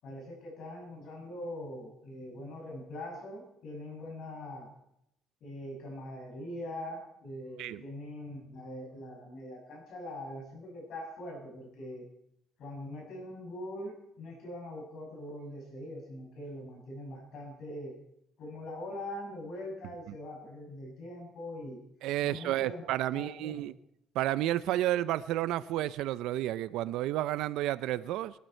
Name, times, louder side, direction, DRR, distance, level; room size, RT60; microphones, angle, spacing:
voice 1, 0.0-4.7 5.4-12.1 12.6-18.0 18.4-21.8 22.2-22.8 23.1-23.6, left 1 dB, 50° left, 6.3 m, -42 dB
voice 2, 22.0-23.7 24.1-28.3, right 14 dB, 75° right, 0.5 m, -31 dB
21.0 x 12.5 x 4.4 m
cardioid pair, 170°, 0 cm